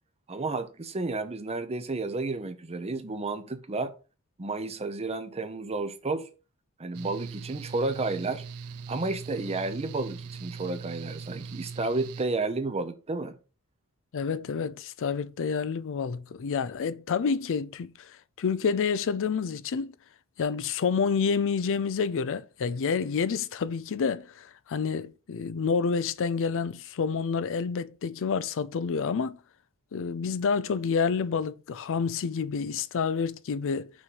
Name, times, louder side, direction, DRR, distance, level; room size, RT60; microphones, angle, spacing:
voice 1, 0.3-3.9 4.4-6.3 6.8-8.4 8.9-13.4, right 3 dB, 30° right, 0.7 m, -31 dB
Mechanical fan, 6.9-12.2, right 5 dB, 90° right, 0.5 m, -41 dB
voice 2, 14.1-19.9 20.4-29.4 29.9-33.9, left 5 dB, 60° left, 0.4 m, -28 dB
6.2 x 3.1 x 5.5 m
head